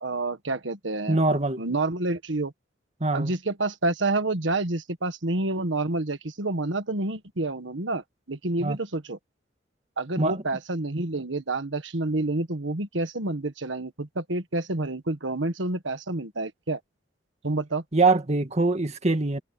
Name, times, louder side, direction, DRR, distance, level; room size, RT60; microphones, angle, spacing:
voice 1, 0.0-2.5 3.1-9.2 10.0-16.8 17.4-17.8, right 2 dB, 70° right, 1.6 m, -28 dB
voice 2, 1.1-1.6 3.0-3.3 8.6-8.8 10.2-10.4 17.9-19.4, right 3 dB, 35° right, 2.0 m, -23 dB
head